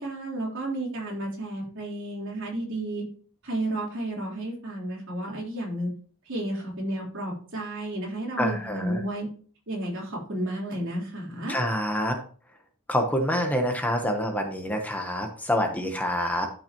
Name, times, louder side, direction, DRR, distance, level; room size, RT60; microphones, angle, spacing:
voice 1, 0.0-3.0 3.4-5.9 6.3-9.3 9.7-11.6, right 1 dB, 65° right, -3 dB, 3.7 m, -32 dB
voice 2, 8.4-9.0 11.5-12.2 12.9-16.5, equal, 10° left, 4 dB, 1.0 m, -26 dB
12.0 x 5.6 x 3.0 m, 0.43 s
head